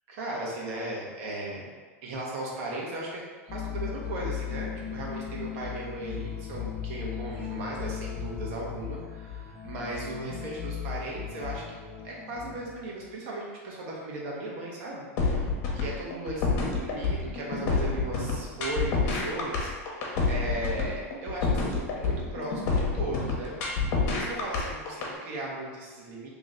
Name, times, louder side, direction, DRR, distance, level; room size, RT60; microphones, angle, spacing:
voice 1, 0.1-1.7 2.0-11.8 12.0-23.8 24.1-26.3, right 2 dB, 65° right, -3 dB, 1.2 m, -37 dB
sound 1, 3.5-13.1, left 8 dB, 30° left, 0.9 m, -37 dB
sound 2, 15.2-25.1, left 4 dB, 55° left, 1.0 m, -27 dB
3.0 x 3.0 x 3.8 m, 1.4 s
hypercardioid pair, 120°, 8 cm